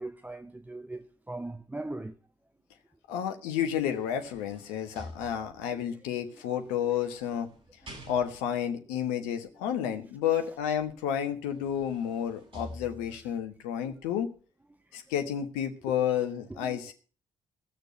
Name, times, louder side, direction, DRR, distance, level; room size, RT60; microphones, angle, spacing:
voice 1, 0.0-2.2 5.7-5.8 7.8-8.1 13.8-13.9 14.9-15.0 16.5-16.8, right 2 dB, 10° right, 0.8 m, -40 dB
voice 2, 3.1-7.5 8.1-14.3 14.9-16.9, left 9 dB, 70° left, 1.4 m, -31 dB
sound 1, 3.8-5.8 6.6-8.6 10.9-11.0 11.4-13.4 13.9-14.1, left 1 dB, 40° right, 7.1 m, -49 dB
16.5 x 6.7 x 7.4 m
figure-of-eight pair, 40°, 15 cm